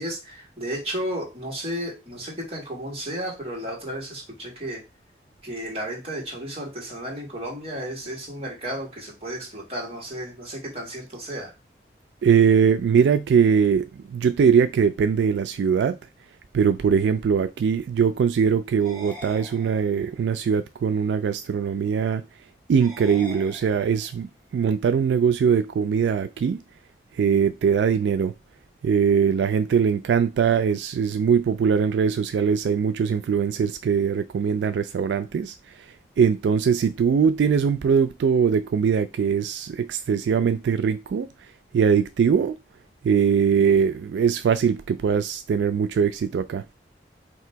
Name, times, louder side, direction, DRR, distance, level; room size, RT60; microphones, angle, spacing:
voice 1, 0.0-4.8 5.4-11.5, right 1 dB, 35° right, 1.7 m, -33 dB
voice 2, 12.2-16.0 16.5-22.2 22.7-26.6 27.1-28.3 28.8-35.5 36.2-41.3 41.7-42.6 43.0-46.6, right 6 dB, 85° right, 0.3 m, -21 dB
sound 1, 18.8-20.2 22.8-24.2, left 1 dB, ahead, 2.4 m, -43 dB
3.2 x 2.9 x 4.5 m
head